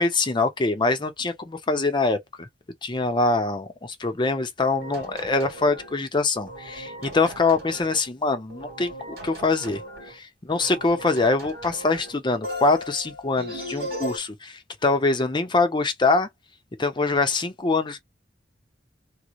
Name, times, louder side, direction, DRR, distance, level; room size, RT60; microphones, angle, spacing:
voice 1, 0.0-2.5 2.8-9.8 10.1-16.3 16.8-18.0, left 3 dB, 25° left, 0.6 m, -24 dB
sound 1, 4.7-6.0 6.4-8.1 8.5-10.2 10.5-12.2 12.4-14.2, equal, 55° right, 2.3 m, -37 dB
3.7 x 2.1 x 3.0 m
head